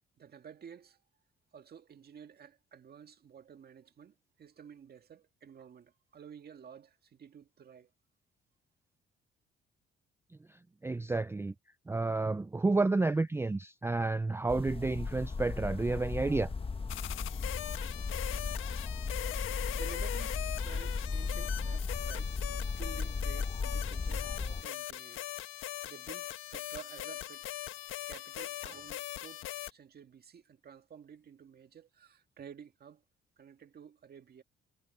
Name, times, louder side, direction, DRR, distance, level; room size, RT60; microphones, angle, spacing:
voice 1, 0.2-1.0 1.5-7.9 19.7-25.3 25.8-27.4 28.1-33.0 33.4-34.4, right 7 dB, 50° right, 1.9 m, -52 dB
voice 2, 10.8-11.5 11.9-16.5, right 3 dB, 10° right, 0.5 m, -30 dB
sound 1, 14.5-24.6, left 4 dB, 30° left, 1.2 m, -36 dB
sound 2, 16.9-29.7, left 13 dB, 85° left, 1.4 m, -41 dB
cardioid pair, 90°, 20 cm